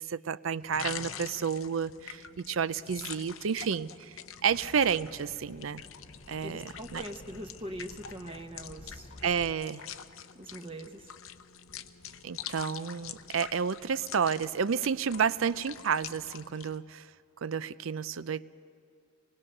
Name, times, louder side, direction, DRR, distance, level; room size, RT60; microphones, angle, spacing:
voice 1, 0.0-5.8 6.3-7.0 9.2-9.8 12.2-17.1 17.4-18.5, right 6 dB, 80° right, 16 dB, 0.5 m, -31 dB
sound 1, 0.6-16.8, left 8 dB, 85° left, 0.8 m, -45 dB
sound 2, 4.5-9.5, left 2 dB, 30° left, 0.6 m, -51 dB
voice 2, 6.4-9.1 10.3-11.1, right 1 dB, 30° right, 4 dB, 0.9 m, -42 dB
26.0 x 20.0 x 6.6 m, 2.6 s
head